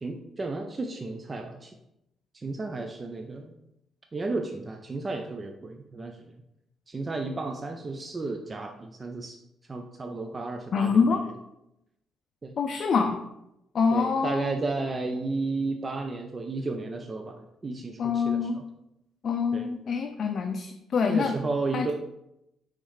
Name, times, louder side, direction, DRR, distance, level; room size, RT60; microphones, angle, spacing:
voice 1, 0.0-1.8 2.3-3.5 4.1-6.2 6.9-9.4 9.7-11.3 12.4-12.5 13.9-18.6 19.5-19.7 21.1-21.9, right 3 dB, 30° right, 4 dB, 0.4 m, -33 dB
voice 2, 10.7-11.2 12.6-13.2 13.7-14.5 18.0-18.6 19.2-21.4 21.7-21.9, left 5 dB, 55° left, 5 dB, 0.4 m, -25 dB
5.4 x 3.2 x 3.1 m, 0.85 s
cardioid pair, 90°, 0 cm